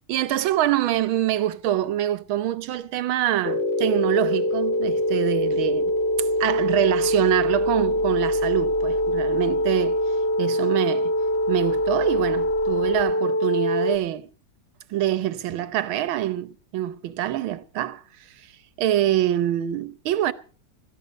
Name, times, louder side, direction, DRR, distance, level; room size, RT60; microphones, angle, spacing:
voice 1, 0.1-5.9 6.2-10.0 10.4-11.1 11.5-14.3 14.9-18.0 18.8-20.3, right 12 dB, 90° right, 1.7 m, -25 dB
sound 1, 3.4-14.0, equal, 40° left, 1.1 m, -23 dB
16.0 x 14.0 x 5.1 m
omnidirectional pair, 2.2 m